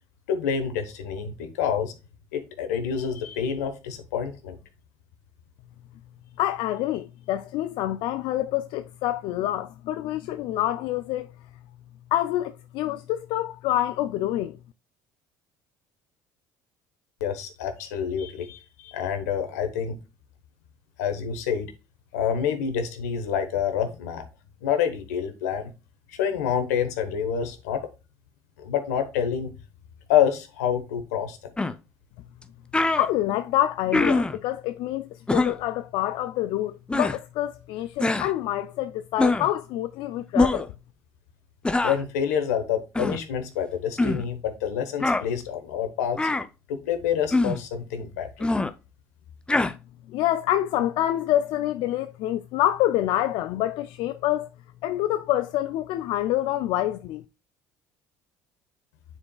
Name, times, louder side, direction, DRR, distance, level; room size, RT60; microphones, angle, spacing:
voice 1, 0.3-1.9 2.3-4.6 17.2-20.0 21.0-21.7 22.1-24.2 24.6-25.7 26.2-27.9 28.6-29.5 30.1-31.5 41.8-46.2 46.7-48.5, left 8 dB, 90° left, 1.0 m, -27 dB
voice 2, 6.4-11.3 12.1-14.6 32.9-40.7 50.1-54.5 54.8-57.2, left 13 dB, 70° left, 0.4 m, -27 dB
sound 1, 31.6-31.7 32.4-32.5 32.7-33.1 33.9-34.4 35.3-35.6 36.9-37.2 38.0-38.3 39.2-39.5 40.3-40.7 41.6-42.0 42.9-43.2 44.0-44.2 45.0-45.2 46.2-46.5 47.3-47.6 48.4-48.7 49.5-49.7, left 2 dB, 10° left, 0.5 m, -23 dB
9.6 x 4.4 x 2.3 m
supercardioid pair, 75°, 8 cm